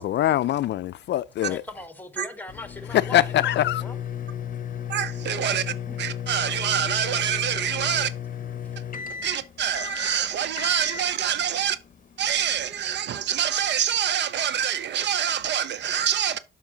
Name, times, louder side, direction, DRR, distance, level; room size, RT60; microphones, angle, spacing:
voice 1, 0.0-1.6 3.1-3.8, left 13 dB, 60° left, 0.4 m, -23 dB
voice 2, 1.5-4.0 5.9-6.0, left 2 dB, 10° left, 1.3 m, -39 dB
sound 1, 2.5-12.8, left 8 dB, 40° left, 0.8 m, -34 dB
voice 3, 4.9-5.6 6.0-8.1 9.2-11.8 12.2-16.4, right 9 dB, 60° right, 0.6 m, -26 dB
7.1 x 5.7 x 3.8 m
cardioid pair, 90°, 20 cm